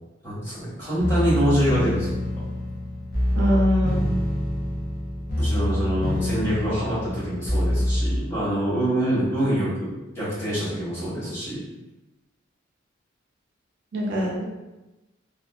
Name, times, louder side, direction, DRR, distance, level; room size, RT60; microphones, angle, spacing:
voice 1, 0.2-2.1 5.4-11.6, right 1 dB, 15° left, -11 dB, 1.2 m, -25 dB
sound 1, 1.0-8.2, left 1 dB, 50° left, 0.7 m, -25 dB
voice 2, 3.3-4.1 13.9-14.4, equal, 60° right, -2 dB, 0.4 m, -23 dB
2.4 x 2.4 x 2.3 m, 1.1 s
head